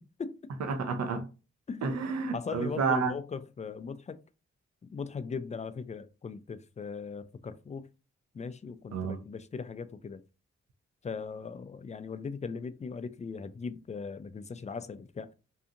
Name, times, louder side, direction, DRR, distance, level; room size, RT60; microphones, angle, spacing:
voice 1, 0.6-1.3 1.8-3.1 8.9-9.2, right 4 dB, 65° right, 0.6 m, -30 dB
voice 2, 2.3-4.2 4.8-7.9 8.3-10.2 11.0-15.3, left 5 dB, 25° left, 0.3 m, -39 dB
2.8 x 2.4 x 2.5 m
supercardioid pair, 45°, 29 cm